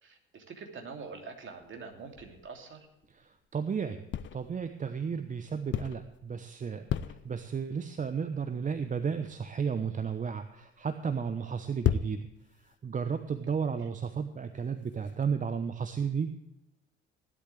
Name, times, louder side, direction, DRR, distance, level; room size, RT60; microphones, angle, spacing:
voice 1, 0.0-2.9 11.4-11.5, right 4 dB, 40° right, 3 dB, 2.9 m, -45 dB
sound 1, 1.0-3.7 4.1-4.7 5.4-6.4 6.7-7.7 8.3-8.4 8.7-15.3, left 10 dB, 40° left, 0.7 m, -37 dB
voice 2, 3.1-4.0 4.3-12.2 12.8-16.3, right 6 dB, 25° right, 9 dB, 1.0 m, -33 dB
16.5 x 11.5 x 3.4 m, 0.89 s
figure-of-eight pair, 60°, 30 cm